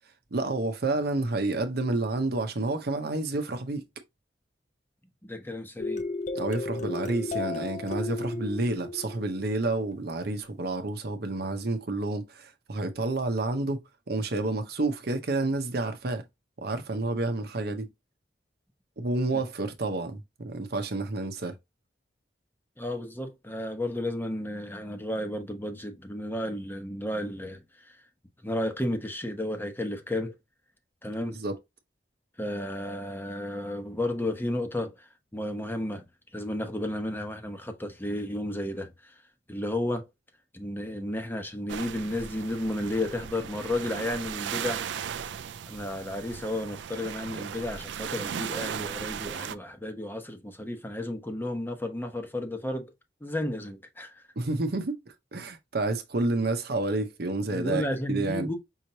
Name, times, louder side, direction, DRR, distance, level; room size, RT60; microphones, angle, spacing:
voice 1, 0.3-3.8 6.3-16.2 16.6-17.9 19.0-21.5 31.2-31.6 54.4-55.0 55.3-58.5, right 2 dB, 60° right, 0.8 m, -29 dB
voice 2, 5.2-6.0 19.3-19.4 22.8-27.9 28.4-30.3 31.0-31.4 32.4-36.0 36.3-39.2 39.5-40.1 40.5-44.8 45.7-52.9 53.2-54.2 57.5-58.6, left 1 dB, 10° left, 0.9 m, -33 dB
sound 1, 5.8-10.3, left 3 dB, 45° left, 0.7 m, -34 dB
sound 2, 41.7-49.6, right 8 dB, 80° right, 0.4 m, -37 dB
5.6 x 3.1 x 2.8 m
head